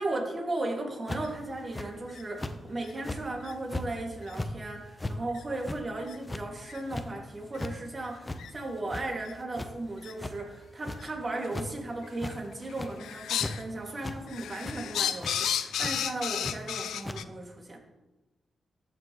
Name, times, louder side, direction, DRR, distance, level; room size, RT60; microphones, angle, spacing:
voice 1, 0.0-17.8, right 2 dB, 40° right, 1 dB, 2.4 m, -36 dB
sound 1, 1.1-1.4 1.7-1.9 2.4-2.6 3.0-3.2 3.7-3.9 4.2-4.5 5.0-5.2 5.6-5.8 6.2-6.4 6.9-7.1 7.4-7.7 8.2-8.4 8.8-9.3 9.5-9.7 10.2-10.3 10.8-11.0 11.4-11.7 12.1-12.4 12.6-12.9 13.4-13.5 14.0-14.2 14.6-14.8 15.2-15.3 15.8-15.9 16.4-16.5 17.0-17.2, left 2 dB, 25° left, 0.8 m, -36 dB
sound 2, 1.2-1.3 2.1-2.2 2.8-2.9 3.4-3.5 4.2-4.4 5.3-5.4 6.0-6.2 6.7-6.8 7.5-7.7 8.4-8.5 9.2-9.3 10.0-10.1 11.0-11.1 12.0-12.4 12.7-13.6 14.0-17.2, left 9 dB, 90° left, 0.3 m, -33 dB
14.0 x 5.9 x 3.2 m, 1.0 s
cardioid pair, 55°, 0 cm